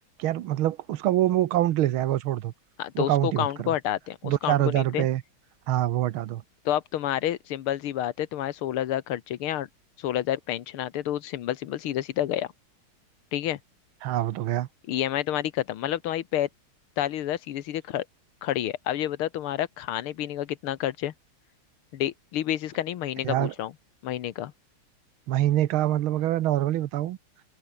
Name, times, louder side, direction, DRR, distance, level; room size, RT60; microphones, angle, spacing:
voice 1, 0.2-2.5 3.0-3.8 4.2-5.2 5.7-6.4 14.0-14.7 23.2-23.5 25.3-27.2, right 13 dB, 80° right, 1.7 m, -25 dB
voice 2, 2.8-5.1 6.7-9.7 10.0-12.5 13.3-13.6 14.9-16.5 17.0-18.1 18.4-21.1 21.9-23.7 24.0-24.5, left 12 dB, 90° left, 2.0 m, -29 dB
omnidirectional pair, 2.3 m